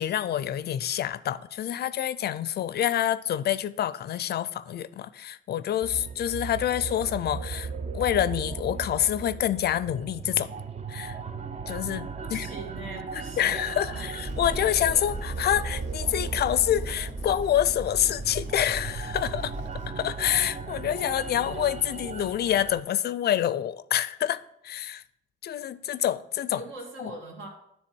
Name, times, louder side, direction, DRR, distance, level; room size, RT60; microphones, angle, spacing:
voice 1, 0.0-10.5 10.9-11.2 11.7-12.5 13.4-19.5 19.9-24.4 24.6-25.0 25.4-26.6 27.0-27.1, left 11 dB, 55° left, 0.4 m, -27 dB
sound 1, 5.8-22.8, right 5 dB, 35° right, 0.5 m, -37 dB
voice 2, 12.2-14.2 26.5-27.5, right 2 dB, 75° right, 2.1 m, -41 dB
sound 2, 14.2-19.9, right 1 dB, 60° right, 2.0 m, -37 dB
9.8 x 3.4 x 6.1 m
cardioid pair, 90°, 20 cm